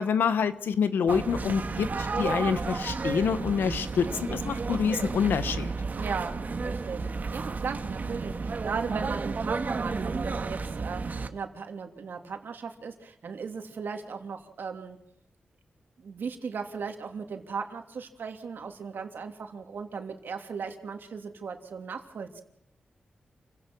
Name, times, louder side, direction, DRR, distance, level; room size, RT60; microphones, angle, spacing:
voice 1, 0.0-5.7, left 7 dB, 90° left, 12 dB, 1.2 m, -27 dB
sound 1, 1.1-11.3, right 4 dB, 55° right, 1.7 m, -32 dB
voice 2, 5.9-6.4 6.6-15.0 16.0-22.4, right 5 dB, 75° right, 4 dB, 3.0 m, -37 dB
28.5 x 17.0 x 6.2 m, 0.74 s
cardioid pair, 55°, 3 cm